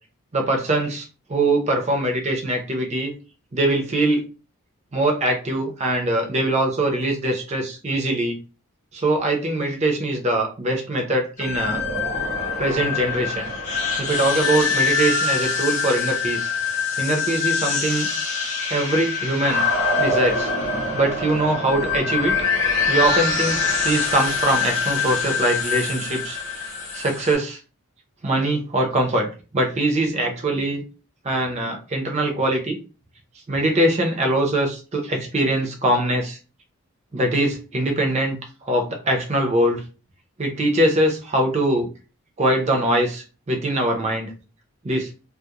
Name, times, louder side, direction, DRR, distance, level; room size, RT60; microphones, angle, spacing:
voice 1, 0.3-3.1 3.5-4.2 4.9-8.4 8.9-11.8 12.6-13.5 14.0-16.5 17.0-18.1 18.7-19.6 20.0-20.5 20.9-22.3 22.9-23.6 23.8-26.4 26.9-27.6 28.2-29.3 29.5-30.8 31.2-32.8 33.5-36.4 37.1-38.4 38.6-39.9 40.4-41.9 42.4-44.3 44.8-45.1, right 1 dB, 30° right, 2 dB, 0.5 m, -22 dB
sound 1, 11.4-27.3, left 4 dB, 35° left, 0.8 m, -24 dB
2.3 x 2.0 x 2.8 m, 0.34 s
head